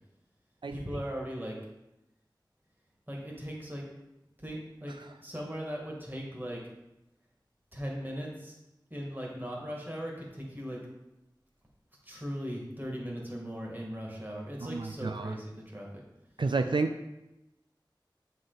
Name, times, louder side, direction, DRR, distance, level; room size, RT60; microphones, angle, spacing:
voice 1, 0.7-1.6 3.1-3.8 4.4-4.9 5.2-6.6 7.7-8.6 8.9-10.8 12.0-16.0, equal, 25° right, -2 dB, 1.9 m, -38 dB
voice 2, 14.6-15.3 16.4-17.0, right 3 dB, 75° right, 7 dB, 0.4 m, -30 dB
7.6 x 5.0 x 4.0 m, 0.94 s
wide cardioid pair, 50°, 8 cm